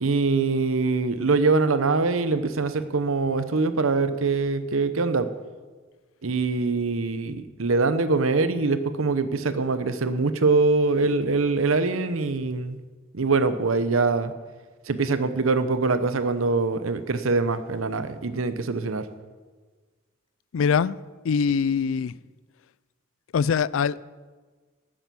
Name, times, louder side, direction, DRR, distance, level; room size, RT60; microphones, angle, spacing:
voice 1, 0.0-5.3 6.2-12.8 13.1-14.3 14.9-19.1, right 3 dB, 90° right, 0.8 m, -23 dB
voice 2, 20.5-21.0 21.2-22.1 23.3-24.0, left 6 dB, 80° left, 0.4 m, -23 dB
12.0 x 9.2 x 7.0 m
head